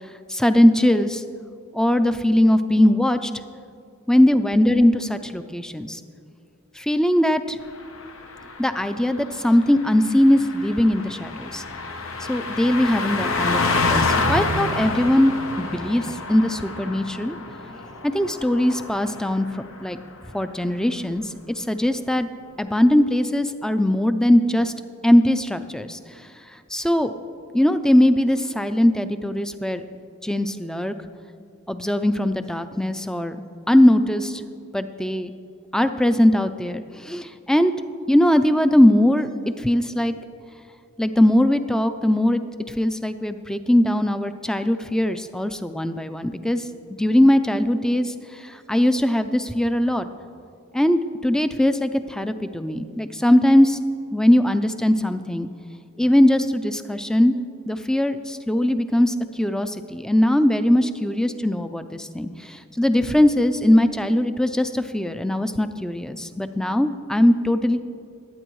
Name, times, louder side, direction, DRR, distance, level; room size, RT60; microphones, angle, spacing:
voice 1, 0.3-1.2 1.7-3.3 4.1-6.0 6.8-7.6 8.6-11.6 12.3-17.4 18.0-20.0 20.3-22.3 22.6-24.7 25.0-26.3 26.7-27.1 27.5-29.8 30.2-30.9 31.7-33.4 33.7-34.4 34.7-35.3 35.7-37.7 38.1-39.3 39.6-40.1 41.0-42.4 42.7-46.7 47.0-50.1 50.7-53.8 54.1-55.5 56.0-57.3 57.7-67.8, left 1 dB, 5° left, 10 dB, 0.4 m, -20 dB
Car passing by, 7.7-19.6 19.9-20.2, left 3 dB, 85° left, 1.0 m, -28 dB
22.0 x 9.0 x 3.1 m, 2.4 s
head